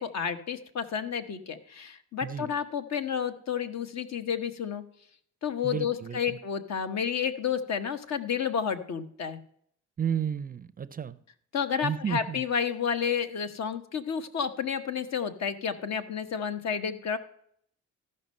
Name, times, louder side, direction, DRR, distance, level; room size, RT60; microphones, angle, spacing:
voice 1, 0.0-4.8 5.4-9.4 11.5-17.2, left 7 dB, 60° left, 1.0 m, -31 dB
voice 2, 2.2-2.5 5.6-6.4 10.0-11.2 11.8-12.4, right 8 dB, 30° right, 0.5 m, -32 dB
14.0 x 5.4 x 5.4 m
cardioid pair, 90°, 30 cm